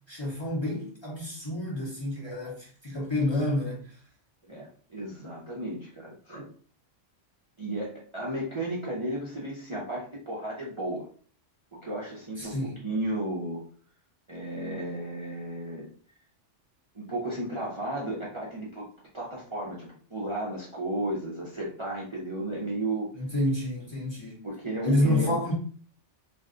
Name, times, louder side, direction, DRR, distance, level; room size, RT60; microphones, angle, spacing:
voice 1, 0.1-4.0 12.4-12.8 23.1-24.4 24.8-25.5, left 1 dB, 25° left, 0.8 m, -29 dB
voice 2, 4.5-6.5 7.6-11.1 11.7-13.6 14.3-15.9 16.9-18.9 19.1-23.1 24.4-25.4, right 1 dB, 30° right, 0.6 m, -34 dB
2.5 x 2.2 x 3.6 m
omnidirectional pair, 1.2 m